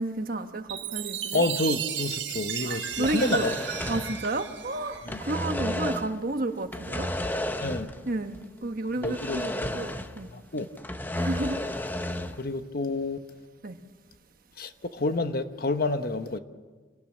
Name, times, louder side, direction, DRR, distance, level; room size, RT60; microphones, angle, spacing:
voice 1, 0.0-1.4 2.6-3.5 3.9-7.1 8.1-10.3 11.2-11.6 13.6-13.8, right 2 dB, 50° right, 1.2 m, -31 dB
Chime, 0.7-5.4, right 9 dB, 80° right, 1.4 m, -34 dB
voice 2, 1.3-3.5 5.1-5.2 7.6-7.9 9.0-9.7 10.3-10.7 12.4-13.2 14.6-16.4, left 2 dB, 55° left, 1.1 m, -29 dB
sound 1, 2.9-4.7 4.9-6.2 6.7-8.1 8.3-8.4 9.0-10.3 10.6-12.4, left 1 dB, 10° left, 0.9 m, -32 dB
26.5 x 18.5 x 7.4 m
head